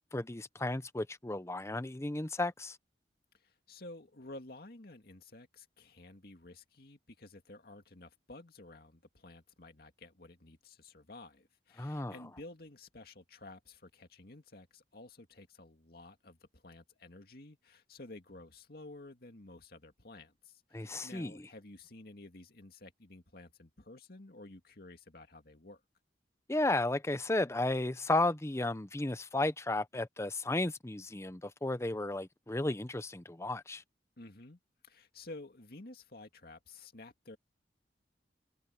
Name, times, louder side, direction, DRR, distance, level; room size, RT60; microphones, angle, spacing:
voice 1, 0.1-2.8 11.8-12.1 20.7-21.5 26.5-33.8, left 2 dB, 15° left, 0.7 m, -33 dB
voice 2, 3.4-25.8 34.2-37.4, left 2 dB, 60° left, 2.2 m, -52 dB
head